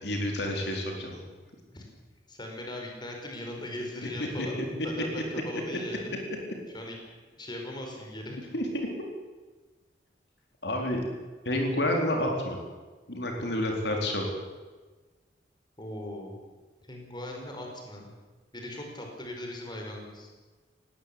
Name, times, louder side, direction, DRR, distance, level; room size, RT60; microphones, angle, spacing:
voice 1, 0.0-1.2 4.2-4.7 8.5-9.1 10.6-11.0 11.4-12.6 13.1-14.3, left 1 dB, 70° left, 1 dB, 4.2 m, -29 dB
voice 2, 2.3-4.6 4.8-6.2 6.7-7.0 7.4-8.4 15.8-16.4 16.8-18.1 18.5-20.3, left 1 dB, 25° left, 1 dB, 5.2 m, -39 dB
20.0 x 18.0 x 8.7 m, 1.3 s
head